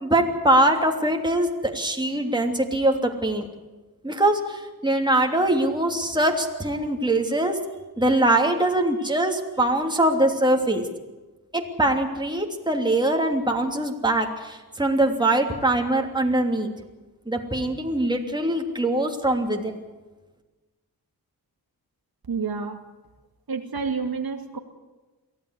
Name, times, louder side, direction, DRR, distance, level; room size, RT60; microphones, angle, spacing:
voice 1, 0.0-3.5 4.0-7.6 8.0-10.8 11.5-16.7 17.3-19.8, right 1 dB, 10° right, 2 dB, 3.1 m, -22 dB
voice 2, 22.3-22.8 23.5-24.6, right 5 dB, 70° right, 4 dB, 2.3 m, -29 dB
23.5 x 16.0 x 8.4 m, 1.2 s
wide cardioid pair, 85°, 38 cm